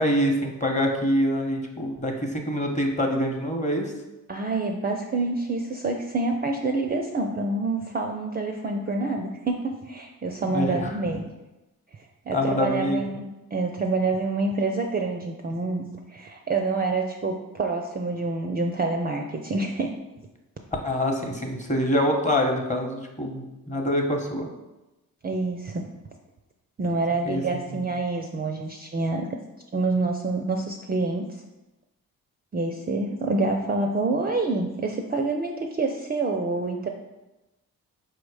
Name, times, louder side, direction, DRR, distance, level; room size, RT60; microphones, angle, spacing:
voice 1, 0.0-3.9 10.5-10.9 12.3-13.0 20.8-24.5 27.2-27.4 27.7-27.8, equal, 20° left, 2 dB, 0.9 m, -25 dB
voice 2, 4.3-11.2 12.3-19.9 25.2-25.9 26.8-29.3 29.7-31.3 32.5-36.9, right 3 dB, 25° right, 3 dB, 0.4 m, -27 dB
4.5 x 2.1 x 4.7 m, 1.0 s
supercardioid pair, 45°, 39 cm